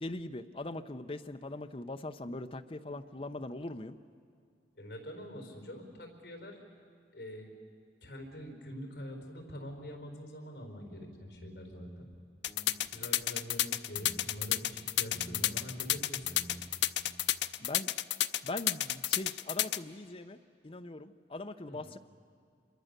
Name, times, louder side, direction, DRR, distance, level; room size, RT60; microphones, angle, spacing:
voice 1, 0.0-4.0 17.6-17.9 18.4-22.0, left 2 dB, 30° left, 8 dB, 0.8 m, -41 dB
voice 2, 4.8-6.6 7.1-7.5 8.0-12.1 12.9-16.4 21.7-21.9, equal, 65° left, 3 dB, 4.3 m, -45 dB
sound 1, 10.8-11.0 11.3-12.2 12.5-13.6 14.0-14.4 14.7-16.7 17.0-17.2, right 1 dB, 10° left, 3.4 m, -51 dB
sound 2, 12.4-19.8, left 13 dB, 80° left, 0.6 m, -30 dB
27.5 x 23.0 x 6.7 m, 2.3 s
head